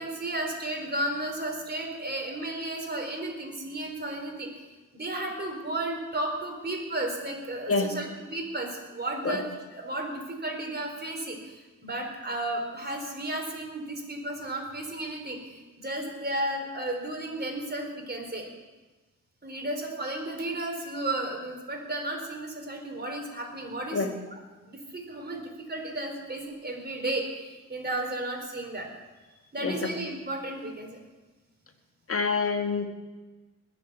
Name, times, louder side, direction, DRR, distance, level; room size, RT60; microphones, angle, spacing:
voice 1, 0.0-4.5 4.9-18.5 19.4-24.0 24.3-24.4 24.6-25.4 25.7-28.9 29.5-31.0, right 1 dB, 30° right, 2 dB, 4.1 m, -33 dB
voice 2, 32.1-32.9, left 4 dB, 45° left, 4 dB, 1.9 m, -26 dB
20.5 x 7.7 x 6.9 m, 1.2 s
cardioid pair, 70°, 31 cm